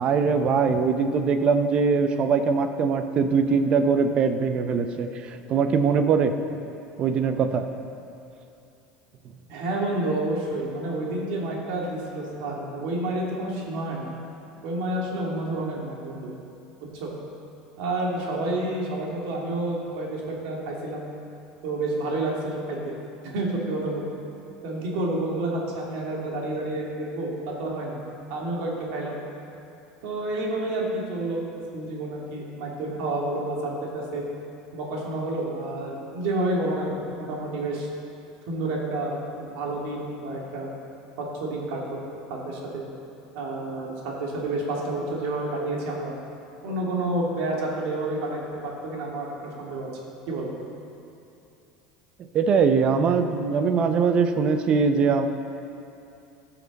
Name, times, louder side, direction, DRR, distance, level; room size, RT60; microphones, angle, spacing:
voice 1, 0.0-6.3 7.0-7.7 52.3-55.3, right 5 dB, 40° right, 8 dB, 0.6 m, -22 dB
voice 2, 9.5-14.1 14.6-16.3 16.8-17.1 17.8-21.1 21.6-23.0 23.2-24.0 24.6-28.0 28.3-29.2 30.0-34.2 34.7-37.9 38.5-40.7 41.2-42.0 42.3-42.8 43.3-46.1 46.6-49.9 50.3-50.5, right 2 dB, 70° right, -2 dB, 2.2 m, -29 dB
15.5 x 5.9 x 4.1 m, 2.7 s
supercardioid pair, 125°, 3 cm